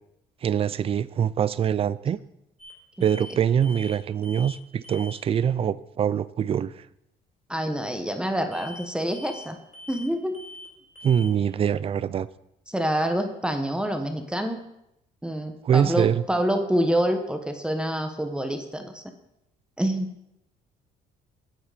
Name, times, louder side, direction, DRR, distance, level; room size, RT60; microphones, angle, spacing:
voice 1, 0.4-2.2 3.0-6.8 11.0-12.3 15.6-16.2, right 8 dB, 35° right, 18 dB, 0.4 m, -24 dB
sound 1, 2.6-2.7 3.0-3.4 3.6-4.6 4.8-5.2 8.5-8.9 9.1-9.5 9.7-10.1 10.3-10.7 11.0-11.3, left 1 dB, 45° left, 3.5 m, -43 dB
voice 2, 7.5-9.6 9.9-10.3 12.7-14.6 15.2-19.0 19.8-20.3, equal, 5° right, 6 dB, 1.0 m, -27 dB
9.0 x 8.0 x 5.0 m, 0.82 s
cardioid pair, 110°, 17 cm